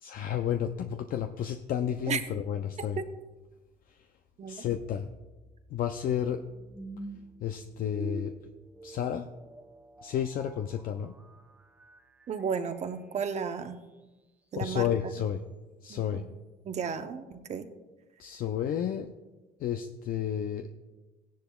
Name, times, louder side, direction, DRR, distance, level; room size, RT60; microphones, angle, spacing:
voice 1, 0.0-3.0 3.9-4.0 4.5-5.1 5.7-6.4 7.4-8.3 8.8-9.3 10.0-11.1 14.5-15.4 15.8-16.2 18.2-19.1 19.6-20.7, left 9 dB, 55° left, 7 dB, 0.5 m, -31 dB
sound 1, 4.7-13.8, right 2 dB, 10° right, 0.7 m, -48 dB
voice 2, 12.3-13.8 14.5-14.9 15.9-16.3 16.6-17.7, right 6 dB, 40° right, 8 dB, 0.9 m, -33 dB
16.0 x 10.5 x 2.3 m, 1.2 s
cardioid pair, 110°, 17 cm